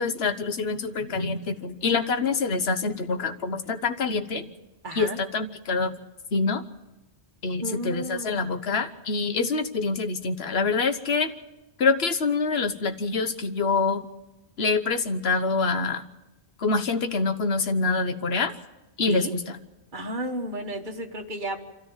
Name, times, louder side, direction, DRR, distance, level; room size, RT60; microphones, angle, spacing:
voice 1, 0.0-4.5 4.9-5.9 6.3-6.6 7.4-11.3 11.8-14.0 14.6-16.0 16.6-18.5 19.0-19.3, left 4 dB, 65° left, 8 dB, 1.3 m, -25 dB
voice 2, 4.8-5.2 7.6-8.4 19.0-19.3 19.9-21.6, right 1 dB, 45° right, 3 dB, 1.7 m, -33 dB
26.0 x 13.5 x 7.3 m, 1.0 s
omnidirectional pair, 1.2 m